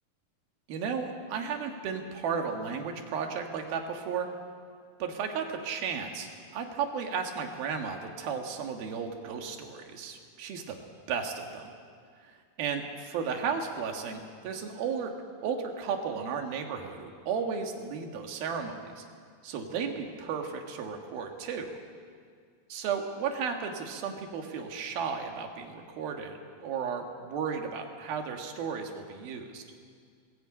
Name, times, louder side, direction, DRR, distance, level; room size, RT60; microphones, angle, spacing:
voice 1, 0.7-4.3 5.0-10.8 11.1-11.7 12.2-15.1 15.4-19.1 19.4-21.8 22.7-29.6, right 6 dB, 75° right, 4 dB, 3.5 m, -34 dB
20.0 x 16.0 x 8.7 m, 2.1 s
omnidirectional pair, 4.3 m